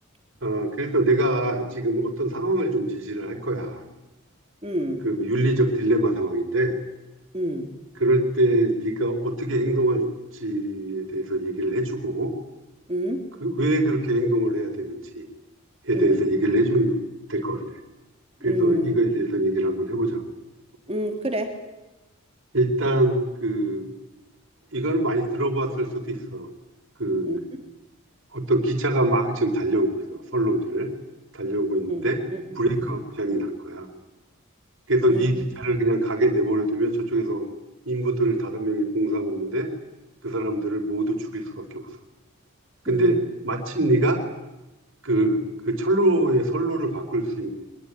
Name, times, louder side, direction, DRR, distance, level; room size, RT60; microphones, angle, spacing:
voice 1, 0.4-3.8 5.0-6.8 8.0-10.0 10.4-12.3 13.4-15.3 15.8-17.0 17.3-17.6 18.4-20.2 22.5-23.9 24.7-26.5 27.0-27.3 28.3-30.9 31.3-32.2 32.6-33.9 34.9-37.5 37.9-39.7 40.2-41.9 42.8-43.2 43.4-44.2 45.0-47.5, right 1 dB, 60° right, 3 dB, 4.4 m, -24 dB
voice 2, 4.6-5.0 7.3-7.7 12.9-13.2 15.9-16.2 18.5-19.0 20.9-21.5 27.2-27.4 31.9-32.1 32.3-32.4 32.7-32.9 35.1-35.3 42.9-43.2, equal, 25° right, 4 dB, 3.3 m, -26 dB
24.0 x 21.5 x 10.0 m, 1.0 s
head